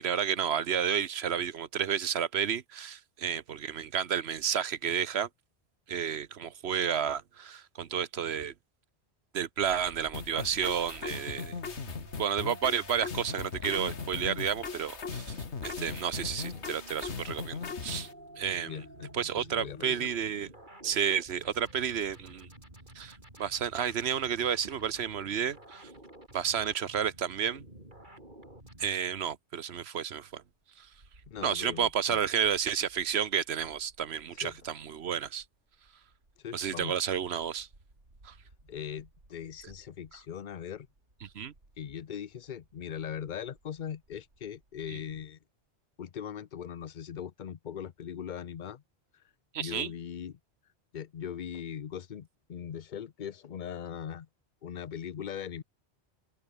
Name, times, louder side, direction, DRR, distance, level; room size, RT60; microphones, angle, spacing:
voice 1, 0.0-5.3 5.9-8.5 9.3-11.6 12.2-18.1 18.4-18.8 19.1-20.5 20.8-22.5 22.9-25.9 26.3-27.6 28.8-30.4 30.8-30.9 31.4-35.4 36.5-37.7 38.2-38.3 41.2-41.5 44.9-45.0 49.5-49.9, right 8 dB, 70° right, 1.2 m, -31 dB
sound 1, 9.6-28.9, right 1 dB, 45° right, 6.9 m, -51 dB
sound 2, 10.1-18.1, left 5 dB, 80° left, 2.0 m, -38 dB
voice 2, 18.7-20.1 31.3-32.2 34.4-34.6 36.4-36.9 38.7-40.9 41.8-45.4 46.0-48.8 49.6-50.3 50.9-54.3 54.6-55.6, left 8 dB, 50° left, 0.8 m, -40 dB
sound 3, 30.3-45.3, right 2 dB, 85° right, 5.8 m, -62 dB
open air
omnidirectional pair, 1.1 m